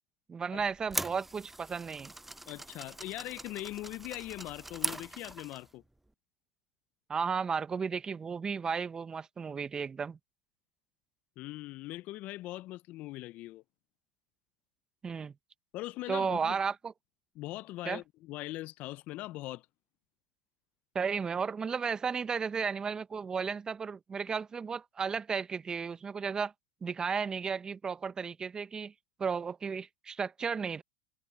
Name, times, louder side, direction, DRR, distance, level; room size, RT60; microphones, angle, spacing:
voice 1, 0.3-2.1 7.1-10.2 15.0-15.3 16.1-16.9 17.8-18.0 20.9-26.5 26.8-28.9 29.2-30.8, right 6 dB, 25° right, 1.3 m, -34 dB
sound 1, 0.6-5.7, right 1 dB, 5° right, 0.6 m, -41 dB
voice 2, 2.5-5.8 11.4-13.6 15.7-16.6 17.4-19.7, left 17 dB, 50° left, 0.9 m, -41 dB
hypercardioid pair, 90°, 3 cm